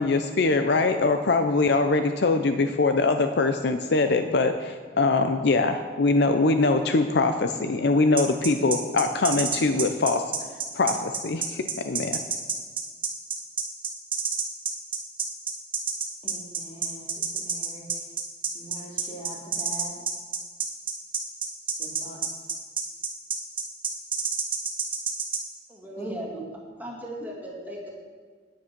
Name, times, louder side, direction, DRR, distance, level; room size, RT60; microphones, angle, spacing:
voice 1, 0.0-10.3 10.7-12.2, left 3 dB, 65° left, 8 dB, 0.6 m, -23 dB
sound 1, 8.2-25.4, right 6 dB, 30° right, 1.5 m, -28 dB
voice 2, 16.2-18.0 18.5-20.0 21.8-22.4 26.0-26.1, right 1 dB, 35° left, -3 dB, 2.8 m, -42 dB
voice 3, 25.7-26.4 26.8-27.9, right 1 dB, 10° right, -4 dB, 2.3 m, -37 dB
10.0 x 9.7 x 6.0 m, 1.5 s
head